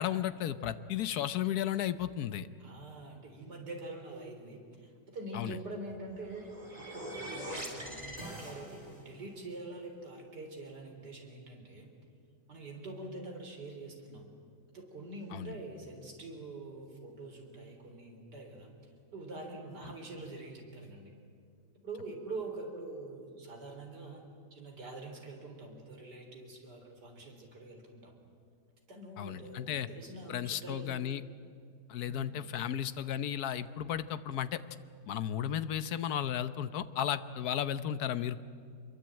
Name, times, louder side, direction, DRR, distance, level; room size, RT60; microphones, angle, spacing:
voice 1, 0.0-2.5 5.3-5.6 15.3-15.5 29.2-29.9 30.3-31.2 31.9-34.6 35.1-38.4, left 10 dB, 65° left, 13 dB, 1.3 m, -34 dB
voice 2, 2.6-6.5 6.8-11.9 12.5-14.3 14.7-18.7 19.1-21.1 21.8-24.2 24.5-28.1 28.9-31.0 32.0-32.5, right 2 dB, 80° right, 2 dB, 4.5 m, -45 dB
sound 1, 6.1-9.1, equal, 20° right, 3.7 m, -43 dB
26.0 x 22.0 x 9.0 m, 2.3 s
omnidirectional pair, 1.8 m